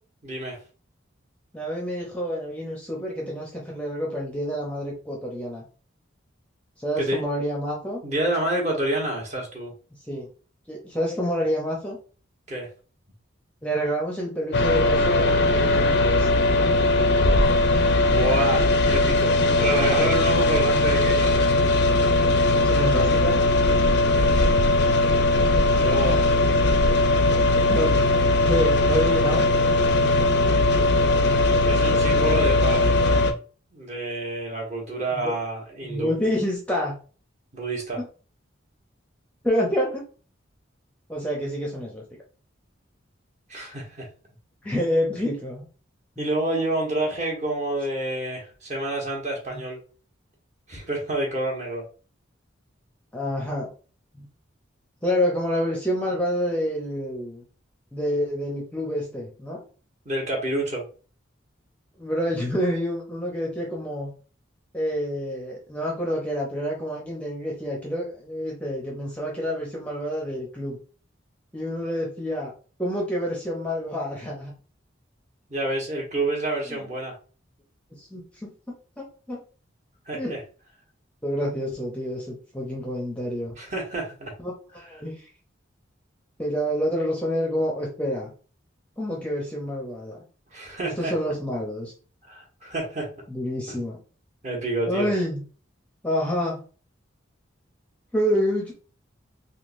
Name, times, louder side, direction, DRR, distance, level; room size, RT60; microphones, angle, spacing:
voice 1, 0.2-0.6 7.0-7.3 8.0-9.7 12.5-12.7 18.0-21.5 24.1-24.4 25.7-26.2 31.6-33.2 33.7-36.1 37.5-38.0 43.5-44.1 46.2-49.8 50.7-51.8 60.0-60.8 75.5-77.1 80.1-80.4 83.6-84.3 90.5-91.1 92.3-93.1 94.4-95.1, right 1 dB, 35° right, -1 dB, 1.1 m, -28 dB
voice 2, 1.5-5.6 6.8-8.0 10.1-10.3 10.7-12.0 13.6-16.3 19.4-20.1 22.6-23.4 27.7-28.0 28.4-29.4 35.1-35.3 35.8-37.0 38.0-38.1 39.4-40.1 41.1-42.0 44.6-45.7 49.5-49.6 53.1-53.7 54.1-54.3 55.0-57.4 57.9-59.6 62.0-64.1 64.7-70.8 71.5-72.5 72.8-74.5 76.7-76.9 78.0-78.5 79.0-79.4 80.1-80.4 81.2-83.5 84.4-85.2 86.4-88.3 89.0-90.2 90.8-91.9 93.3-94.0 94.9-95.4 96.0-96.6 98.1-98.7, equal, 5° left, -2 dB, 0.6 m, -28 dB
sound 1, 14.5-33.3, left 2 dB, 55° left, 0.5 m, -19 dB
3.7 x 2.8 x 2.5 m, 0.38 s
head